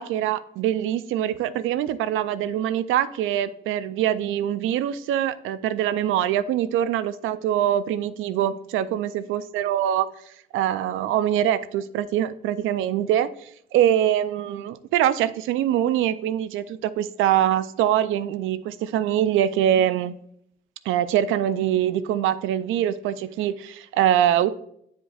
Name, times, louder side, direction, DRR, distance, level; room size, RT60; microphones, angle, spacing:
voice 1, 0.0-10.1 10.5-13.3 13.7-20.2 20.9-24.5, right 11 dB, 90° right, 0.4 m, -23 dB
9.7 x 5.1 x 2.4 m
cardioid pair, 90°, 20 cm